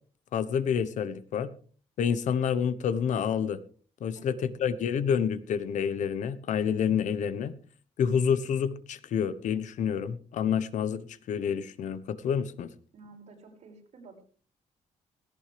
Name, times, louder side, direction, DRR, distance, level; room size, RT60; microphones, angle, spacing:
voice 1, 0.3-1.5 2.0-3.6 4.0-7.5 8.0-12.7, left 7 dB, 80° left, 15 dB, 1.1 m, -28 dB
voice 2, 12.9-14.2, right 3 dB, 60° right, 1 dB, 5.7 m, -51 dB
17.5 x 17.5 x 3.4 m, 0.41 s
wide cardioid pair, 165°, 12 cm